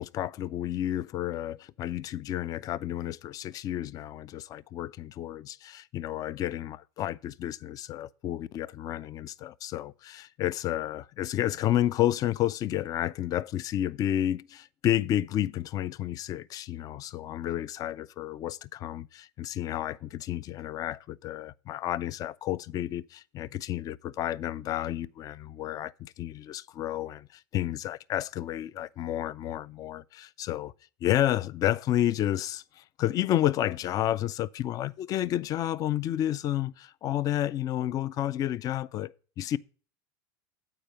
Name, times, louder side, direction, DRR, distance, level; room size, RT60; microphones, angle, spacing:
voice 1, 0.0-30.7 31.0-39.6, left 12 dB, 35° left, 0.4 m, -31 dB
8.8 x 4.8 x 6.6 m
supercardioid pair, 125°, 11 cm